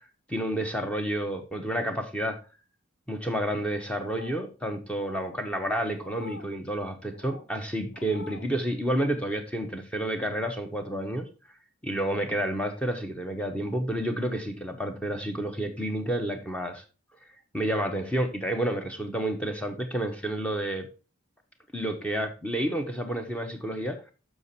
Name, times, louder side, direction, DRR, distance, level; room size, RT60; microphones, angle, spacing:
voice 1, 0.3-2.4 3.1-11.3 11.8-16.8 17.5-20.9 21.7-24.0, right 1 dB, 5° left, 5 dB, 0.9 m, -30 dB
sound 1, 3.9-4.5 5.0-5.4 6.0-6.5 7.1-7.5 7.9-8.5, left 5 dB, 65° left, 0.7 m, -45 dB
7.1 x 5.9 x 4.1 m, 0.33 s
head